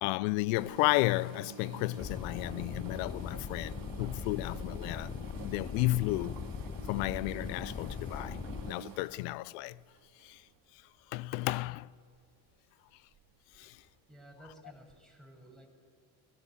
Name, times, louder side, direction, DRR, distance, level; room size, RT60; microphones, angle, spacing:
voice 1, 0.0-6.4 6.9-8.4 8.7-9.8 10.2-10.4 10.7-10.8 11.1-11.9 13.5-13.8, left 20 dB, 80° left, 0.6 m, -33 dB
sound 1, 0.5-10.7 11.4-11.6 12.1-12.3 13.1-13.6 13.9-14.0 14.9-15.0, right 7 dB, 45° right, 2.3 m, -49 dB
sound 2, 2.0-8.7, left 6 dB, 15° left, 0.4 m, -40 dB
voice 2, 13.6-15.7, right 1 dB, ahead, 6.8 m, -55 dB
17.5 x 17.0 x 9.1 m
supercardioid pair, 85°, 49 cm